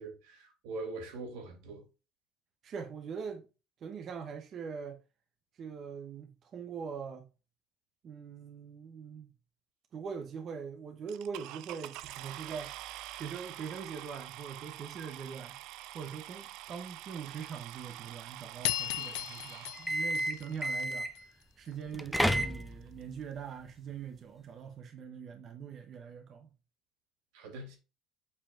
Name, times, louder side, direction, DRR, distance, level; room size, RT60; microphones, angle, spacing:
voice 1, 0.0-1.8 27.3-27.8, right 2 dB, 85° right, 2.7 m, -42 dB
voice 2, 2.6-3.5 3.8-5.0 5.5-7.3 8.0-9.3 9.9-12.7 13.1-15.6 15.9-21.1 21.6-26.5, right 6 dB, 35° right, 0.9 m, -42 dB
sound 1, 11.1-21.0 21.8-21.9 22.4-22.5 22.7-23.0, right 15 dB, 65° right, 0.4 m, -46 dB
sound 2, 18.6-21.2, left 17 dB, 85° left, 0.5 m, -36 dB
sound 3, 19.7-21.2 21.9-23.0, equal, ahead, 0.5 m, -31 dB
6.9 x 5.5 x 2.5 m
cardioid pair, 155°, 0 cm